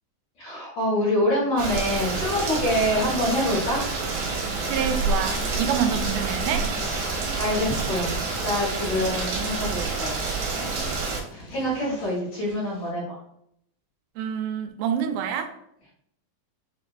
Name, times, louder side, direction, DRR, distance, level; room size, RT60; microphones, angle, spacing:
voice 1, 0.4-3.9 6.7-7.1 7.4-13.2, left 1 dB, 50° left, 2.3 m, -26 dB
Rain, 1.6-11.2, right 3 dB, 70° right, 2.7 m, -28 dB
sound 1, 2.8-12.9, left 1 dB, 70° left, 3.4 m, -48 dB
voice 2, 4.7-6.7 14.2-15.6, right 8 dB, 90° right, 2.6 m, -27 dB
6.9 x 3.0 x 2.5 m
omnidirectional pair, 4.5 m